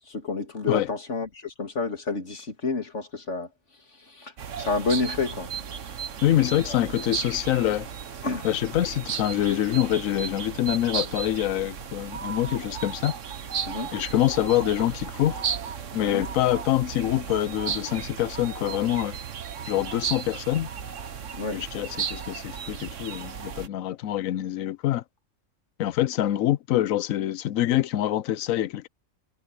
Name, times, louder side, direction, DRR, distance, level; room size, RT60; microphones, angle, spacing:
voice 1, 0.1-3.5 4.0-4.3 4.6-5.5 8.2-8.5 13.7-13.9 16.0-16.2 21.3-21.6, left 4 dB, 60° left, 2.9 m, -29 dB
sound 1, 4.4-23.7, right 7 dB, 65° right, 1.5 m, -35 dB
voice 2, 6.2-7.9 8.4-13.1 13.9-15.4 15.9-19.2 19.7-20.7 21.5-25.0 25.8-28.9, left 13 dB, 85° left, 1.0 m, -25 dB
omnidirectional pair, 1.4 m